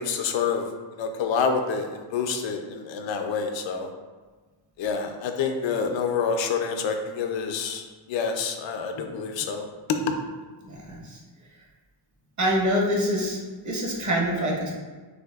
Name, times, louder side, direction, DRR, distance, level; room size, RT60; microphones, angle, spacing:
voice 1, 0.0-3.9 4.8-10.0, left 5 dB, 75° left, 5 dB, 0.6 m, -28 dB
voice 2, 10.6-11.2 12.4-13.4 13.6-14.7, equal, 40° right, -2 dB, 0.8 m, -25 dB
6.1 x 2.7 x 2.3 m, 1.3 s
wide cardioid pair, 160°, 46 cm